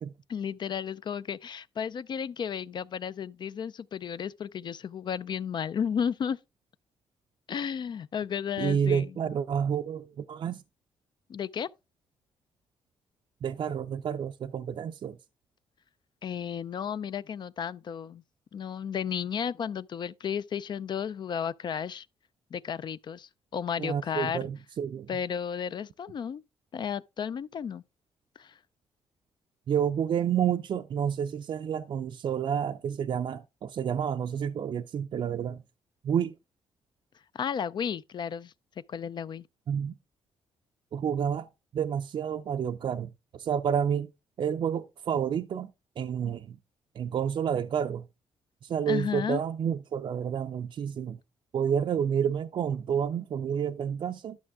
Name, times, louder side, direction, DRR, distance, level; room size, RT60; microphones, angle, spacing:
voice 1, 0.3-6.4 7.5-9.1 11.3-11.7 16.2-18.2 18.5-22.1 22.5-24.5 25.1-26.4 26.7-27.8 28.4-28.6 37.3-38.5 38.9-39.4 48.9-49.4, left 7 dB, 45° left, 0.4 m, -33 dB
voice 2, 8.6-10.6 13.4-15.2 23.8-25.1 29.7-35.6 36.0-36.3 39.7-40.0 40.9-41.5 41.7-44.1 44.4-45.7 46.0-46.6 47.0-48.1 48.6-51.2 51.5-54.4, right 8 dB, 50° right, 0.4 m, -29 dB
11.0 x 5.9 x 3.5 m
cardioid pair, 110°, 10 cm